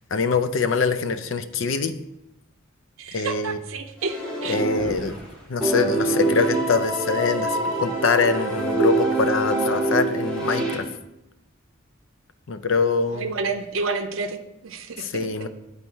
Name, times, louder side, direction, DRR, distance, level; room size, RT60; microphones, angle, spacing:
voice 1, 0.1-1.9 3.1-3.6 4.5-5.2 5.5-10.9 12.5-13.3 15.0-15.5, left 4 dB, 70° left, 11 dB, 0.5 m, -24 dB
voice 2, 3.0-4.6 13.1-15.1, right 4 dB, 75° right, 6 dB, 0.6 m, -30 dB
sound 1, 4.0-5.3 5.6-10.8, right 2 dB, 5° left, 2.1 m, -25 dB
9.3 x 4.2 x 4.4 m, 0.89 s
head